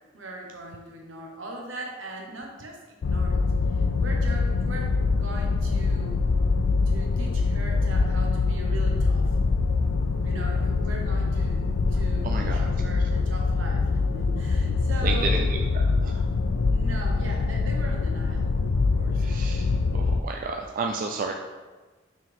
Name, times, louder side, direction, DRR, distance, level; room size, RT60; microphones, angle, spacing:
voice 1, 0.1-3.4 3.7-4.9 5.2-6.2 6.9-9.3 10.2-11.6 11.9-15.5 16.6-18.5 18.9-19.2, right 2 dB, 80° right, 0 dB, 1.2 m, -39 dB
sound 1, 3.0-20.2, left 4 dB, 85° left, 0.4 m, -24 dB
voice 2, 12.2-12.6 15.0-15.4 16.0-16.1 19.2-19.6 19.9-21.3, right 4 dB, 45° right, 2 dB, 0.4 m, -31 dB
6.2 x 4.7 x 3.5 m, 1.3 s
head